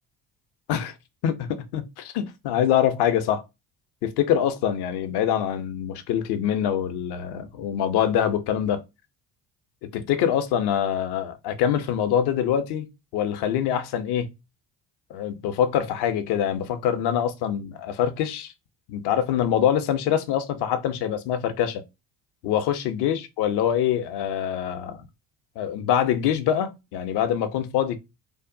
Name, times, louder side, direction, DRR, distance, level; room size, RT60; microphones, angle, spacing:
voice 1, 1.2-3.4 4.0-8.8 9.8-14.3 15.1-18.5 18.9-21.8 22.4-25.0 25.6-28.0, left 9 dB, 50° left, 0.6 m, -24 dB
2.7 x 2.0 x 2.6 m
hypercardioid pair, 55°, 50 cm